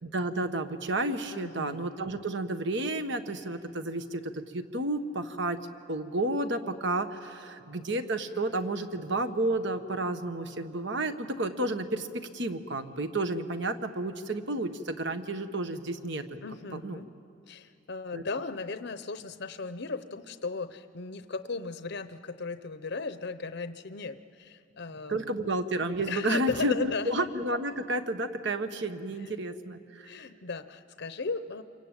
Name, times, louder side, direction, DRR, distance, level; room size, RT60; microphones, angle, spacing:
voice 1, 0.0-5.6 5.9-16.4 16.7-17.0 18.1-18.2 25.1-30.1, right 2 dB, 65° right, 8 dB, 1.4 m, -31 dB
voice 2, 1.3-1.8 16.4-17.1 17.5-25.3 26.1-27.1 29.2-29.3 30.0-31.6, left 4 dB, 60° left, 10 dB, 0.8 m, -36 dB
28.0 x 24.0 x 8.9 m, 2.6 s
head